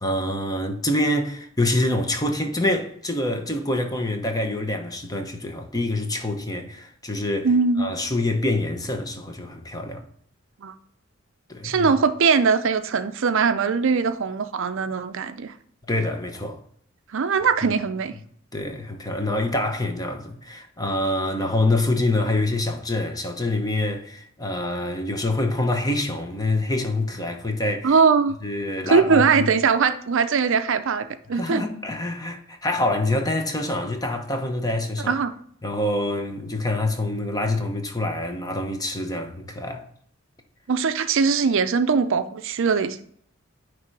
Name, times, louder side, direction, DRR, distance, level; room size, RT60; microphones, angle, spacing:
voice 1, 0.0-7.5 7.8-10.0 11.5-11.9 15.9-16.6 18.5-27.9 28.4-29.5 31.3-35.1 35.6-39.8, left 1 dB, 20° left, 0.9 m, -26 dB
voice 2, 7.4-7.9 10.6-10.7 11.6-15.5 17.1-18.1 27.8-28.4 28.9-31.6 35.1-35.3 40.7-43.0, right 5 dB, 65° right, 0.5 m, -21 dB
9.6 x 3.3 x 4.7 m
head